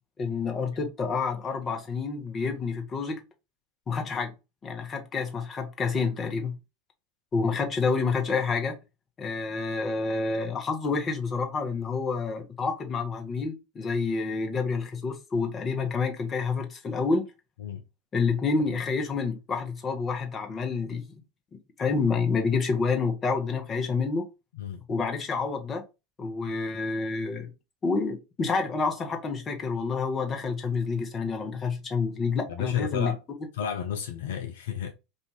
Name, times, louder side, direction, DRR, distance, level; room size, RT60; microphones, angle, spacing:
voice 1, 0.2-3.2 3.9-4.3 4.6-6.5 7.3-8.8 9.2-17.3 18.1-21.1 21.8-24.3 24.9-25.8 26.2-27.5 27.8-33.1, left 4 dB, 30° left, 0.8 m, -28 dB
voice 2, 32.5-33.2 33.5-34.9, left 8 dB, 70° left, 0.4 m, -32 dB
2.5 x 2.3 x 3.0 m
figure-of-eight pair, 80°, 0 cm